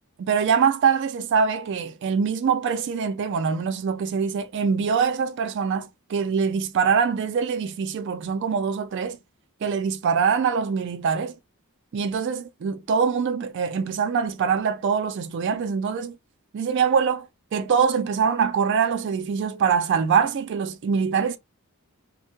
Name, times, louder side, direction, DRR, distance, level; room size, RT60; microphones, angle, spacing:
voice 1, 0.2-9.2 9.6-11.3 11.9-16.1 16.5-17.3 17.5-21.4, right 6 dB, 55° right, 0.3 m, -23 dB
2.6 x 2.1 x 2.7 m
head